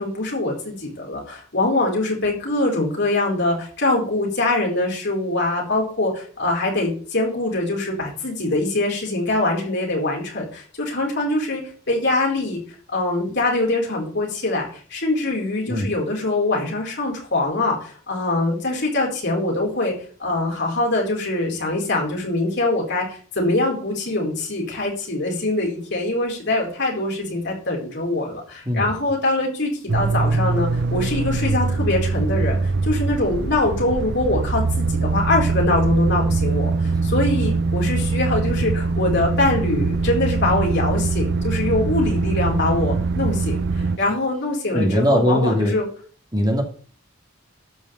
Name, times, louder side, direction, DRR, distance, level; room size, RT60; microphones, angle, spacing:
voice 1, 0.0-11.6 11.9-12.6 12.9-19.9 20.2-45.9, left 2 dB, 55° left, -1 dB, 4.8 m, -23 dB
sound 1, 29.9-44.0, right 3 dB, 55° right, 0.6 m, -22 dB
voice 2, 44.7-45.7 46.3-46.6, equal, 20° right, 3 dB, 2.0 m, -20 dB
12.5 x 5.3 x 8.6 m, 0.43 s
head